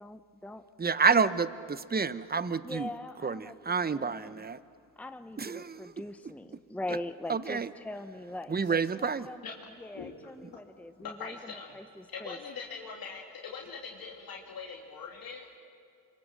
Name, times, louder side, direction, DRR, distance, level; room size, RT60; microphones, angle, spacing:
voice 1, 0.0-0.6 1.2-1.3 2.6-4.4 5.0-9.5 9.8-12.4, left 1 dB, 5° left, 9 dB, 0.9 m, -42 dB
voice 2, 0.8-2.9 3.2-4.6 5.4-5.8 7.3-7.7 8.5-9.3, right 5 dB, 25° right, 14 dB, 0.9 m, -29 dB
voice 3, 11.0-11.7 12.1-15.6, left 5 dB, 60° left, -2 dB, 2.8 m, -42 dB
27.0 x 23.5 x 7.6 m, 2.3 s
supercardioid pair, 55°, 39 cm